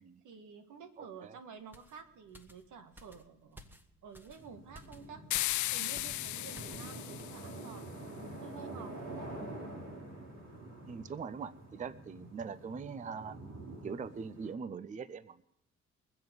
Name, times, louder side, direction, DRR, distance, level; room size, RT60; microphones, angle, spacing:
voice 1, 0.0-3.7 4.0-5.2 5.7-9.3, right 6 dB, 80° right, 8 dB, 1.6 m, -51 dB
voice 2, 1.0-1.4 10.9-13.4 13.8-15.4, right 5 dB, 25° right, 16 dB, 0.5 m, -42 dB
sound 1, 1.7-6.9 7.2-7.4, equal, 5° right, 1.3 m, -56 dB
sound 2, 4.4-14.5, right 1 dB, 60° right, 3.1 m, -47 dB
sound 3, 5.3-7.7, left 17 dB, 75° left, 0.4 m, -36 dB
22.5 x 7.8 x 5.2 m, 0.75 s
cardioid pair, 90°, 30 cm